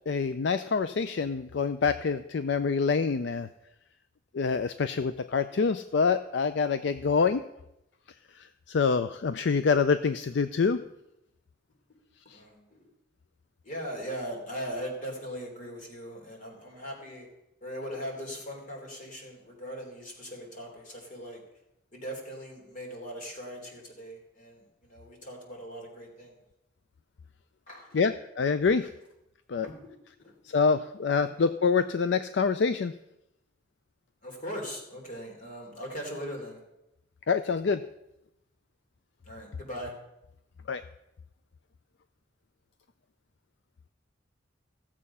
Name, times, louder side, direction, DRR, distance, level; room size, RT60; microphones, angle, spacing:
voice 1, 0.1-3.5 4.3-7.4 8.7-10.8 12.3-12.4 27.9-28.9 29.5-29.7 30.5-32.9 37.3-37.8 40.7-40.8, left 5 dB, 70° left, 11 dB, 0.4 m, -26 dB
voice 2, 12.2-12.8 13.6-17.3 17.6-21.4 21.9-26.4 27.7-28.1 29.6-30.5 34.2-36.6 39.2-39.9, equal, 45° left, 0 dB, 3.3 m, -40 dB
15.0 x 7.5 x 5.6 m, 0.87 s
head